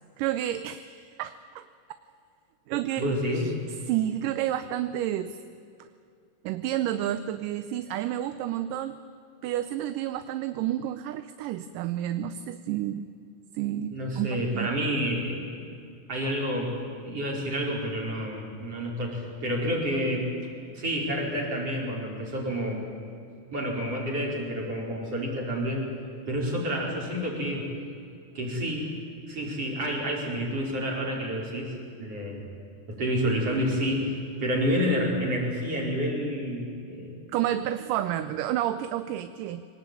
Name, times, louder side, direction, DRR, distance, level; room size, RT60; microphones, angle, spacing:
voice 1, 0.2-1.7 2.7-3.5 3.9-5.4 6.4-9.0 9.4-13.1 13.5-14.7 37.3-39.7, right 12 dB, 80° right, 11 dB, 2.2 m, -30 dB
voice 2, 3.0-3.4 13.9-15.4 16.1-16.7 17.0-20.3 20.6-22.8 23.5-25.9 26.3-27.7 28.4-28.9 29.3-31.7 32.0-32.4 32.9-37.2, equal, 45° right, -2 dB, 5.5 m, -29 dB
23.5 x 19.0 x 9.3 m, 2.5 s
omnidirectional pair, 4.0 m